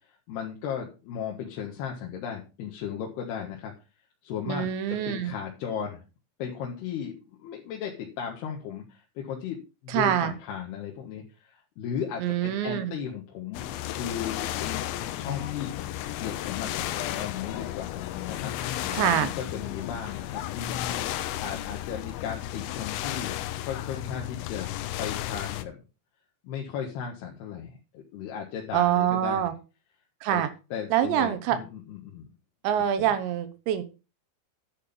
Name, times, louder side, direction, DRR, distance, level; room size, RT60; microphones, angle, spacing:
voice 1, 0.3-3.7 4.2-6.0 6.4-15.7 16.1-16.8 17.2-18.0 18.3-18.5 19.0-24.7 25.0-25.7 26.4-29.5 30.3-30.4 30.7-32.3 33.0-33.1, left 8 dB, 65° left, -1 dB, 3.3 m, -36 dB
voice 2, 4.5-5.3 9.9-10.3 12.2-12.9 18.9-19.3 28.7-29.5 30.2-30.5 30.9-31.6 32.6-33.8, right 10 dB, 80° right, 11 dB, 3.2 m, -25 dB
sound 1, 13.5-25.6, left 13 dB, 90° left, 3.2 m, -33 dB
11.0 x 6.5 x 5.3 m, 0.31 s
omnidirectional pair, 5.3 m